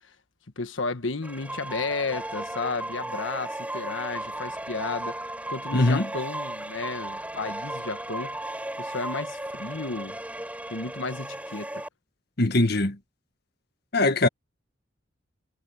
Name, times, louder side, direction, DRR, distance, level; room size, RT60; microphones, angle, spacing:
voice 1, 0.6-5.2 5.5-8.4 8.8-10.2 10.7-11.8, left 3 dB, 80° left, 1.4 m, -33 dB
sound 1, 1.2-11.9, right 1 dB, 5° right, 6.9 m, -35 dB
voice 2, 5.7-6.1 12.4-12.9 13.9-14.3, left 2 dB, 55° left, 1.7 m, -21 dB
head